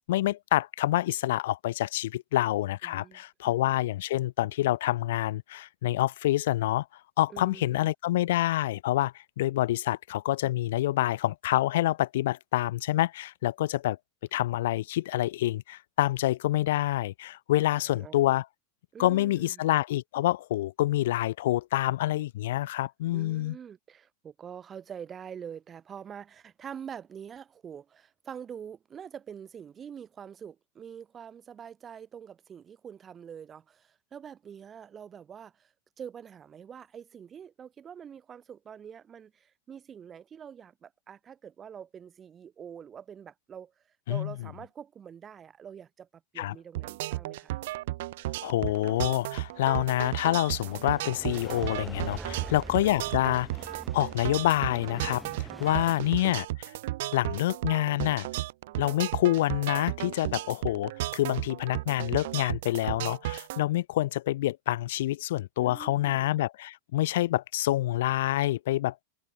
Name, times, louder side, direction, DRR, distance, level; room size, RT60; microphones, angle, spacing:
voice 1, 0.1-6.9 7.2-14.0 14.3-18.5 19.0-23.6 44.1-44.3 46.4-46.5 48.4-56.7 57.1-58.3 58.8-68.9, left 15 dB, 55° left, 0.8 m, -27 dB
voice 2, 2.8-3.5 7.3-7.8 17.8-18.2 18.9-19.7 23.1-43.7 44.1-47.6 52.2-52.6 65.6-66.4, right 8 dB, 25° right, 1.8 m, -45 dB
sound 1, 46.8-63.6, right 17 dB, 55° right, 0.4 m, -34 dB
sound 2, 48.8-56.3, right 2 dB, 5° right, 1.1 m, -45 dB
figure-of-eight pair, 90°, 0 cm